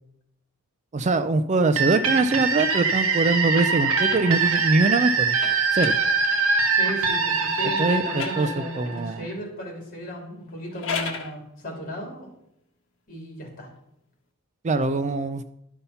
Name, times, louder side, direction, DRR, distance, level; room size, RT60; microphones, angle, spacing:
voice 1, 0.9-5.4 5.7-6.0 7.8-8.5 8.8-9.3 14.6-15.4, right 3 dB, 30° right, 11 dB, 0.4 m, -23 dB
sound 1, 1.8-9.3, right 4 dB, 65° right, 1.3 m, -23 dB
sound 2, 2.8-6.9 7.7-9.1 10.5-11.4, left 5 dB, 60° left, 1.5 m, -38 dB
voice 2, 6.7-12.3 13.1-13.7, equal, 40° left, 0 dB, 3.5 m, -35 dB
12.0 x 5.6 x 5.6 m, 0.80 s
head